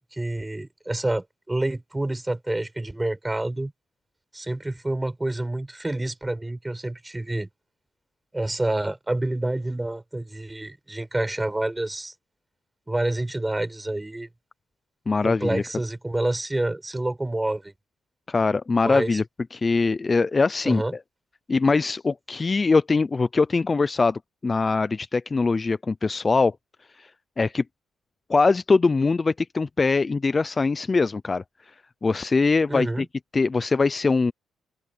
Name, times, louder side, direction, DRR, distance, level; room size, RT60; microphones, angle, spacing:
voice 1, 0.1-3.7 4.3-7.5 8.3-12.1 12.9-14.3 15.2-17.7 18.8-19.2 20.6-20.9 32.7-33.1, right 2 dB, 15° right, 4.7 m, -28 dB
voice 2, 15.1-15.6 18.3-19.2 19.5-20.8 21.5-26.6 27.0-27.1 27.4-27.6 28.3-31.4 32.0-32.9 33.3-34.3, left 4 dB, 30° left, 0.5 m, -22 dB
open air
cardioid pair, 90°, 0 cm